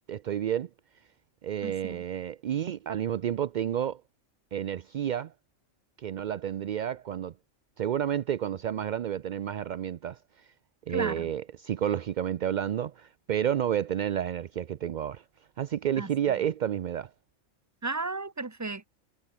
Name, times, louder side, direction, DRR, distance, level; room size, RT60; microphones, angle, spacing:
voice 1, 0.1-0.7 1.4-4.0 4.5-5.3 6.0-7.3 7.8-10.2 10.9-15.2 15.6-17.1, right 10 dB, 65° right, 0.4 m, -30 dB
voice 2, 1.6-2.0 10.9-11.3 16.0-16.1 17.8-18.9, right 3 dB, 15° right, 0.9 m, -34 dB
omnidirectional pair, 1.3 m